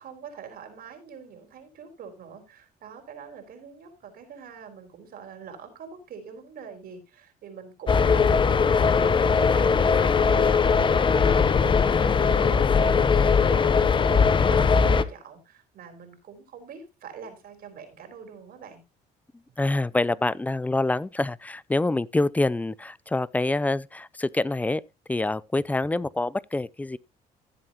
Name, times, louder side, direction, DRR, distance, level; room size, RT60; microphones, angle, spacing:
voice 1, 0.0-8.5 8.7-18.8, right 6 dB, 60° right, 3.8 m, -43 dB
sound 1, 7.9-15.0, left 5 dB, 30° left, 0.8 m, -20 dB
voice 2, 19.6-24.8 25.1-27.0, left 2 dB, 10° left, 0.4 m, -26 dB
15.5 x 7.6 x 2.9 m
cardioid pair, 110°, 17 cm